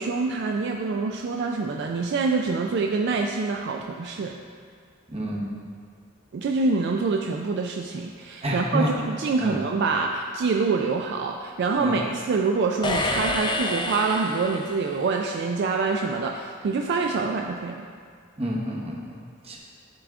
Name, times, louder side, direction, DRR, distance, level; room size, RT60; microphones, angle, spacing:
voice 1, 0.0-4.3 6.3-17.9, right 4 dB, 60° right, 2 dB, 0.3 m, -26 dB
voice 2, 5.1-5.5 8.4-8.9 9.4-9.6 11.8-12.0 18.4-19.1 19.5-19.6, equal, 30° right, -2 dB, 0.9 m, -28 dB
sound 1, 12.8-15.1, left 2 dB, 25° left, 0.4 m, -28 dB
10.5 x 3.6 x 3.5 m, 2.1 s
head